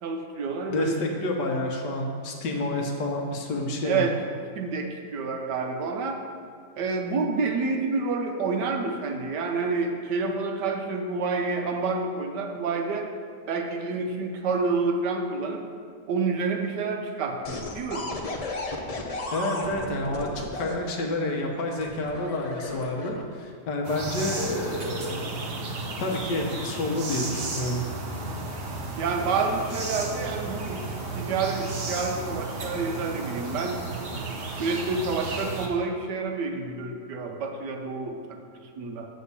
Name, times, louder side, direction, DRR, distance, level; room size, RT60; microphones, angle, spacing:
voice 1, 0.0-1.0 3.8-4.2 4.5-6.2 6.8-13.1 13.5-15.6 16.1-18.1 29.0-30.9 31.1-33.9 34.6-39.1, right 4 dB, 80° right, 3 dB, 1.5 m, -28 dB
voice 2, 0.7-4.0 19.3-25.3 26.0-27.8, left 2 dB, 85° left, 1 dB, 1.6 m, -29 dB
sound 1, 17.4-20.8 21.8-23.4 24.1-24.4, left 2 dB, 65° left, 0.3 m, -34 dB
sound 2, 23.8-35.7, right 2 dB, 45° right, 1.0 m, -33 dB
8.3 x 4.2 x 6.8 m, 2.1 s
omnidirectional pair, 1.8 m